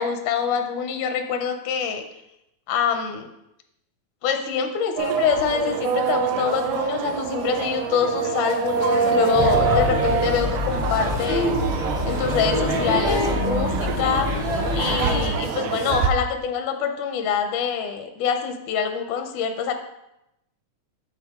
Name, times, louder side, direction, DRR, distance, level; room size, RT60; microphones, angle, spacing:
voice 1, 0.0-2.0 2.7-3.3 4.2-11.6 12.1-19.7, left 7 dB, 85° left, 6 dB, 2.1 m, -25 dB
sound 1, 5.0-16.1, right 6 dB, 85° right, 2.1 m, -26 dB
Male speech man speaking / Child speech kid speaking / Chatter, 9.3-15.3, left 2 dB, 45° right, 0.6 m, -25 dB
10.5 x 4.1 x 3.5 m, 0.87 s
omnidirectional pair, 3.4 m